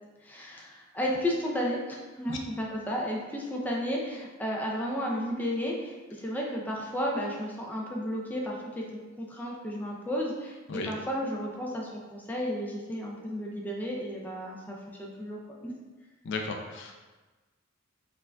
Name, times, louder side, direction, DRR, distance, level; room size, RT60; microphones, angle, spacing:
voice 1, 0.2-15.7, equal, 10° left, -2 dB, 0.4 m, -33 dB
voice 2, 16.2-17.0, left 4 dB, 65° left, 3 dB, 0.4 m, -35 dB
4.5 x 2.4 x 2.2 m, 1.2 s
head